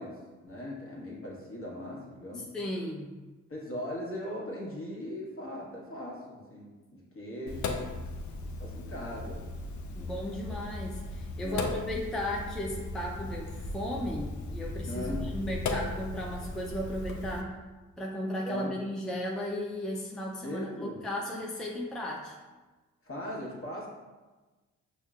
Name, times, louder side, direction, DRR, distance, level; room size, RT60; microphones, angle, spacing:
voice 1, 0.0-2.5 3.5-7.9 8.6-9.5 9.9-10.2 11.4-11.7 14.9-15.3 18.4-18.7 20.4-21.0 23.0-23.9, left 1 dB, 40° left, -4 dB, 1.2 m, -39 dB
voice 2, 2.3-3.1 9.9-17.5 18.0-22.3, left 1 dB, ahead, -2 dB, 0.5 m, -35 dB
Sink (filling or washing), 7.5-17.4, left 2 dB, 60° left, 0.5 m, -37 dB
5.4 x 2.2 x 2.4 m, 1.2 s
hypercardioid pair, 45°, 33 cm